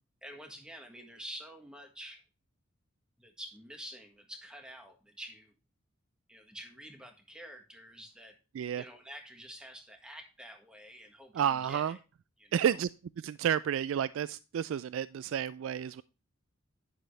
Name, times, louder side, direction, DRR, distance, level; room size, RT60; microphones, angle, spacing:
voice 1, 0.2-2.2 3.2-5.5 6.3-8.3 8.7-12.0 12.4-12.8, equal, 5° right, 1.5 m, -48 dB
voice 2, 11.4-12.0 12.5-12.9 13.2-16.0, right 9 dB, 70° right, 0.3 m, -31 dB
10.5 x 6.7 x 3.2 m
head